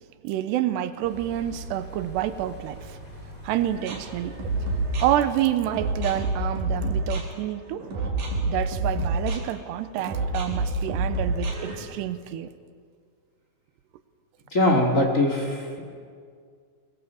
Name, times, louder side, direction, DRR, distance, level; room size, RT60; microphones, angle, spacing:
voice 1, 0.2-3.0 3.4-4.4 5.0-7.9 8.5-12.5, right 12 dB, 80° right, 11 dB, 3.0 m, -28 dB
sound 1, 1.0-6.7, right 2 dB, 10° left, 3.2 m, -40 dB
sound 2, 3.6-11.8, right 2 dB, 55° right, 5.1 m, -28 dB
voice 2, 14.5-15.8, left 1 dB, 25° left, 2 dB, 1.9 m, -22 dB
24.0 x 21.5 x 7.1 m, 2.1 s
omnidirectional pair, 4.9 m